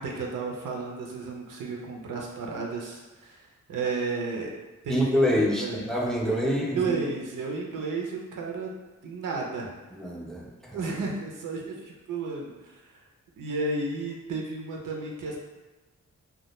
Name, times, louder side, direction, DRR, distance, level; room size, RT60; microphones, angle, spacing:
voice 1, 0.0-4.5 4.8-5.9 6.4-8.7 9.0-9.7 10.7-12.8 13.4-15.4, right 3 dB, 90° right, -1 dB, 0.5 m, -33 dB
voice 2, 4.9-7.0 9.9-10.8, equal, ahead, -2 dB, 0.5 m, -26 dB
2.2 x 2.1 x 2.9 m, 1.2 s
cardioid pair, 60°, 31 cm